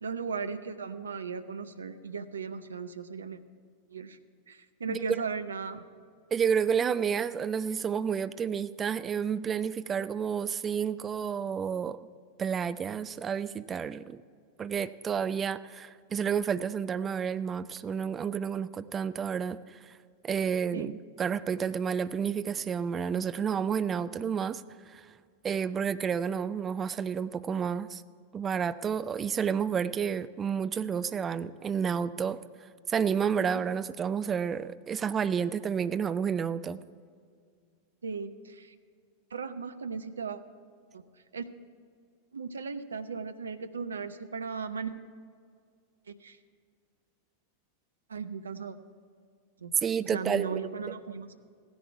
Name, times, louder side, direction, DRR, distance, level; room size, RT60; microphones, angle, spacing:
voice 1, 0.0-3.4 3.9-4.2 4.5-5.8 20.7-20.9 33.3-33.6 38.0-38.7 39.3-40.4 40.9-41.0 41.3-41.5 42.3-44.9 46.1-46.4 48.1-48.8 49.6-49.7 50.1-51.3, right 5 dB, 70° right, 10 dB, 0.7 m, -37 dB
voice 2, 4.9-5.2 6.3-12.0 12.4-14.2 14.6-19.9 20.2-24.6 24.9-25.1 25.4-28.0 28.3-32.4 32.9-36.8 49.8-50.6 50.9-51.0, right 7 dB, 20° right, 14 dB, 0.4 m, -30 dB
16.0 x 10.5 x 4.6 m, 2.1 s
figure-of-eight pair, 90°, 0 cm